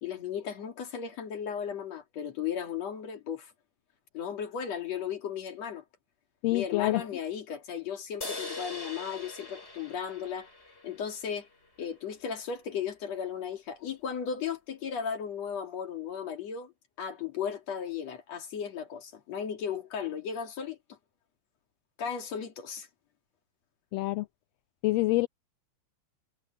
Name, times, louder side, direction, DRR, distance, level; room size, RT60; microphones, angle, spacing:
voice 1, 0.0-3.5 4.1-5.8 6.5-10.5 10.8-11.5 11.8-16.7 17.0-20.8 22.0-22.9, left 7 dB, 60° left, 3.3 m, -35 dB
voice 2, 6.4-7.0 23.9-24.3 24.8-25.3, left 19 dB, 80° left, 1.5 m, -26 dB
sound 1, 8.2-11.7, left 2 dB, 20° left, 4.9 m, -42 dB
omnidirectional pair, 3.5 m